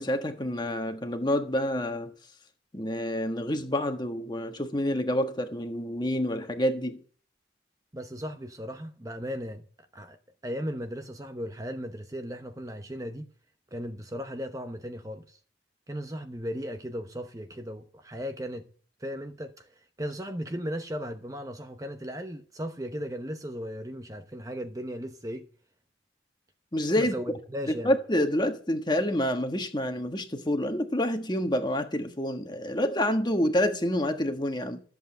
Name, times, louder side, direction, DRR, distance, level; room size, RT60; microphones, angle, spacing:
voice 1, 0.0-2.1 2.7-7.0 26.7-27.1 27.8-34.8, left 1 dB, 25° left, 1.4 m, -28 dB
voice 2, 7.9-9.6 9.9-10.2 10.4-13.3 13.7-15.4 15.9-18.6 19.0-25.5 26.9-27.9, equal, 20° right, 0.9 m, -36 dB
14.0 x 7.8 x 7.7 m
head